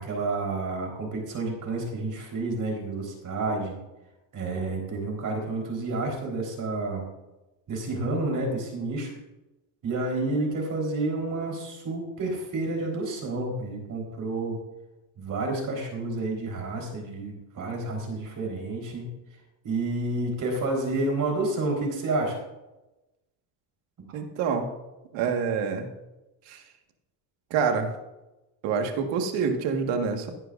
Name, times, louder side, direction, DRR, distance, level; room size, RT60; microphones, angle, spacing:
voice 1, 0.0-3.8 4.3-7.0 7.7-9.1 9.8-14.6 15.2-19.1 19.6-22.4, right 2 dB, 45° right, 0 dB, 4.1 m, -30 dB
voice 2, 24.1-24.7 25.1-25.9 26.5-26.6 27.5-27.9 28.6-30.3, right 6 dB, 80° right, 4 dB, 1.7 m, -27 dB
17.0 x 11.0 x 2.6 m, 1.0 s
cardioid pair, 110°, 43 cm